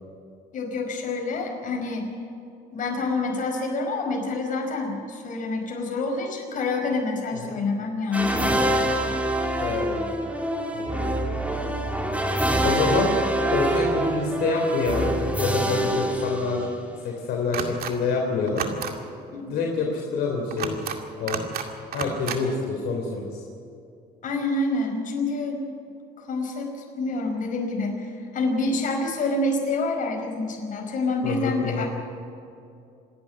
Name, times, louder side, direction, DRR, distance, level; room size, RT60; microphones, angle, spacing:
voice 1, 0.5-2.1 2.7-8.8 19.3-19.6 24.2-25.6 26.2-31.9, left 3 dB, 50° left, 2 dB, 5.1 m, -27 dB
sound 1, 8.1-17.0, right 1 dB, 10° right, 2.4 m, -25 dB
voice 2, 9.6-10.2 10.7-11.2 12.6-13.2 13.5-16.7 17.0-18.7 19.5-20.9 21.2-21.4 21.9-23.4 31.2-31.9, left 4 dB, 75° left, 0 dB, 3.5 m, -27 dB
sound 2, 17.5-17.9 18.5-18.9 20.5-21.0 21.3-21.7 21.9-22.4, right 8 dB, 65° right, 2.3 m, -30 dB
27.0 x 10.5 x 9.5 m, 2.6 s
cardioid pair, 110°, 17 cm